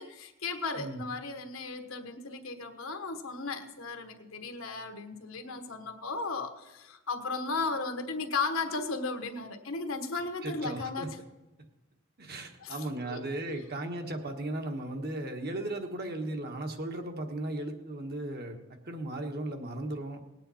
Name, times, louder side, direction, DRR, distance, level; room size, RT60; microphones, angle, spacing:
voice 1, 0.0-11.2 12.6-13.6, left 3 dB, 75° left, 6 dB, 1.3 m, -35 dB
voice 2, 10.4-11.1 12.2-20.2, right 1 dB, 50° right, 4 dB, 1.4 m, -36 dB
19.0 x 9.0 x 4.3 m, 1.1 s
head